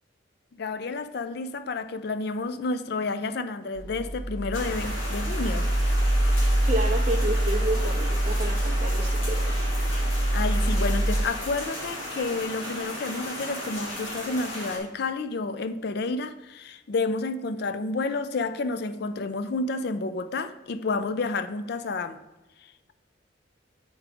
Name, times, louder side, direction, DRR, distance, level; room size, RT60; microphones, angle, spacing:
voice 1, 0.5-5.7 10.0-22.2 22.6-22.9, left 3 dB, 55° left, 11 dB, 0.4 m, -30 dB
sound 1, 3.7-11.2, right 1 dB, 20° left, 1.7 m, -25 dB
sound 2, 4.5-14.8, left 1 dB, 85° left, 2.1 m, -36 dB
voice 2, 6.6-9.7, right 2 dB, 35° right, -1 dB, 0.6 m, -31 dB
7.8 x 4.8 x 5.0 m, 1.1 s
head